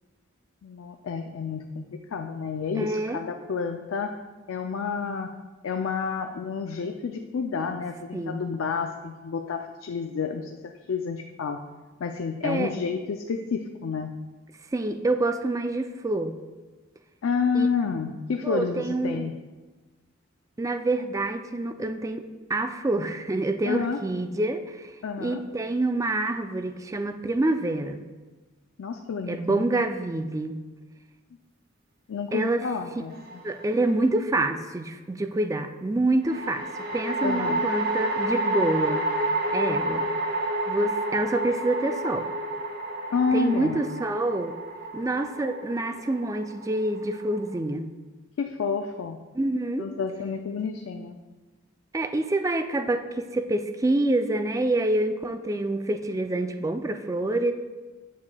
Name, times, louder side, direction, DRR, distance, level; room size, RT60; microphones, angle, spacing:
voice 1, 0.6-4.1 4.5-5.3 5.6-11.6 12.0-14.1 17.2-19.3 23.7-24.0 25.0-25.4 28.8-29.8 32.1-33.4 37.2-37.7 43.1-43.9 48.4-49.2 49.8-51.2, left 5 dB, 75° left, 5 dB, 0.4 m, -30 dB
voice 2, 2.8-3.2 8.1-8.4 12.4-12.7 14.7-16.3 17.5-17.7 18.4-19.3 20.6-22.2 22.5-24.9 25.2-28.0 29.3-30.6 32.3-32.6 33.4-39.1 39.5-40.0 40.7-42.3 43.3-44.5 44.9-47.9 49.3-49.9 51.9-57.5, right 2 dB, 15° right, 8 dB, 0.3 m, -27 dB
sound 1, 33.1-33.8 36.2-47.6, right 1 dB, 50° right, 0.9 m, -30 dB
8.4 x 7.2 x 2.3 m, 1.3 s
head